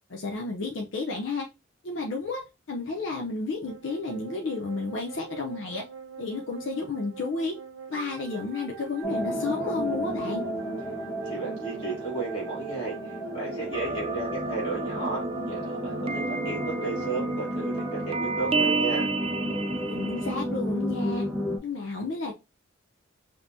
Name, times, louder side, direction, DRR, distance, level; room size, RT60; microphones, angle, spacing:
voice 1, 0.1-1.5 1.8-2.4 2.7-5.8 6.2-7.6 7.9-10.4 19.9-21.3 21.6-22.3, left 3 dB, 75° left, 0.6 m, -32 dB
sound 1, 3.7-17.1, right 1 dB, 85° right, 0.7 m, -41 dB
sound 2, 9.0-21.6, right 1 dB, 5° right, 1.1 m, -32 dB
voice 2, 11.2-19.1, right 3 dB, 30° left, 2.3 m, -34 dB
sound 3, 13.7-20.4, right 3 dB, 30° right, 0.3 m, -32 dB
5.3 x 2.9 x 2.6 m
head